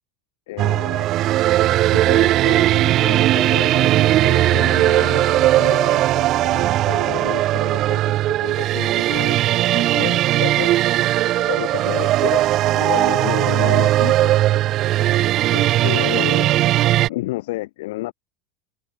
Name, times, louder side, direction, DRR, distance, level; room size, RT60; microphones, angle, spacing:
voice 1, 0.5-1.1 1.9-10.7 11.5-14.4 15.5-16.6 17.0-18.1, left 18 dB, 80° left, 5.9 m, -31 dB
sound 1, 0.6-17.1, right 14 dB, 45° right, 0.4 m, -18 dB
supercardioid pair, 135°, 0 cm